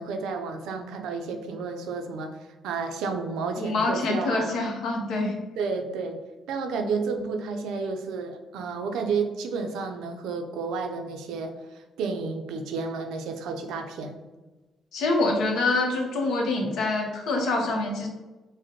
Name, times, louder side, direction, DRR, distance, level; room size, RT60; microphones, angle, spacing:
voice 1, 0.0-2.3 2.6-4.6 5.6-6.2 6.5-11.5 12.0-14.2, right 4 dB, 90° right, 5 dB, 0.4 m, -31 dB
voice 2, 3.6-5.3 14.9-18.1, left 2 dB, 80° left, 1 dB, 0.8 m, -25 dB
5.0 x 2.1 x 2.8 m, 1.2 s
cardioid pair, 90°, 0 cm